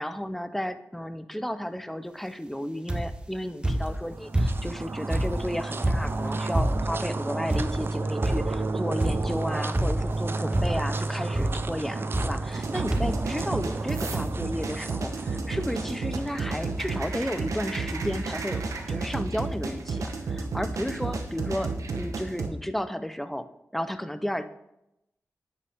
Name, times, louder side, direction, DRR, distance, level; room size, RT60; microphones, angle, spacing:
voice 1, 0.0-18.6 18.9-23.5 23.7-24.4, equal, 5° left, 11 dB, 0.7 m, -33 dB
sound 1, 2.9-3.3 3.6-4.8 5.1-7.0 7.5-7.9 8.2-8.6 9.0-9.4 9.7-10.2 10.5-11.0 11.3-11.6 12.1-12.6 12.9-13.3 14.0-14.1 14.3-14.4, right 1 dB, 15° right, 1.0 m, -27 dB
sound 2, 3.7-17.1, right 3 dB, 45° right, 0.5 m, -32 dB
sound 3, 12.5-22.5, right 3 dB, 80° right, 1.0 m, -32 dB
9.3 x 5.7 x 3.6 m, 0.85 s
cardioid pair, 50°, 5 cm